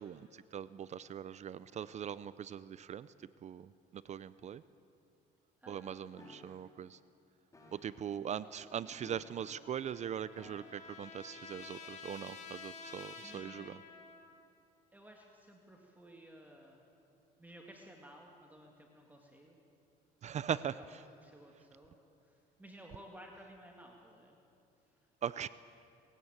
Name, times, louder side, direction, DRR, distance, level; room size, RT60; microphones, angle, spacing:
voice 1, 0.0-3.1 3.4-4.6 5.7-7.0 7.7-13.8 20.2-21.0 25.2-25.5, right 9 dB, 45° right, 16 dB, 0.5 m, -41 dB
voice 2, 5.6-6.4 8.3-9.2 13.2-13.8 14.9-16.8 17.4-19.6 21.2-22.0 22.2-24.4, right 1 dB, 10° right, 1 dB, 2.2 m, -56 dB
sound 1, 6.2-6.6 7.5-8.0 9.0-9.6 10.3-10.9 11.7-11.9, left 2 dB, 20° left, 3.9 m, -57 dB
Trumpet, 9.3-14.5, left 4 dB, 45° left, 2.5 m, -51 dB
21.0 x 16.0 x 8.9 m, 2.5 s
cardioid pair, 110°, 17 cm